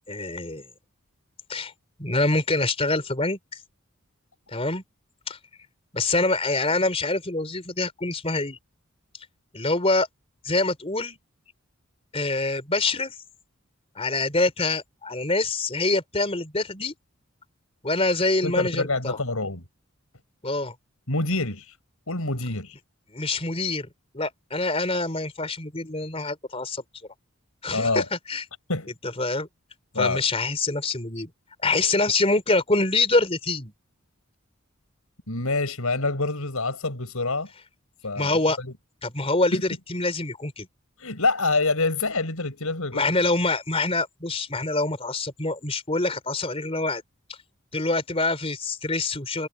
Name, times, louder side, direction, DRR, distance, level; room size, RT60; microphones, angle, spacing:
voice 1, 0.1-0.6 1.5-1.7 2.0-3.6 4.5-4.8 5.3-5.4 5.9-8.6 9.5-10.1 10.4-11.2 12.1-13.1 14.0-16.9 17.8-19.2 20.4-20.7 23.1-23.9 24.1-26.8 27.6-28.4 29.2-29.5 30.0-31.3 31.6-33.7 38.2-38.6 39.0-40.7 42.9-47.0 47.7-49.5, left 2 dB, 25° left, 4.0 m, -25 dB
voice 2, 18.4-19.6 21.1-21.8 22.1-22.8 27.7-28.1 28.7-28.9 29.9-30.2 35.3-37.5 38.0-38.7 39.5-39.6 41.0-43.1, left 3 dB, 90° left, 6.0 m, -26 dB
head